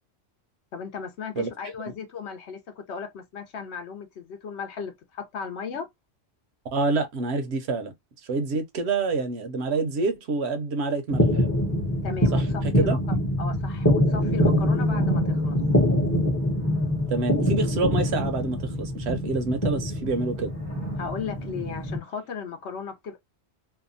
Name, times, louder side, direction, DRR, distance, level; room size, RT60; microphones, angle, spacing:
voice 1, 0.7-5.9 12.0-15.6 21.0-23.2, left 6 dB, 65° left, 0.9 m, -36 dB
voice 2, 6.7-7.9 8.3-11.4 12.3-13.0 17.1-20.5, right 3 dB, 65° right, 0.8 m, -27 dB
sound 1, 11.1-22.0, equal, 15° left, 0.6 m, -24 dB
2.8 x 2.1 x 2.5 m
omnidirectional pair, 1.3 m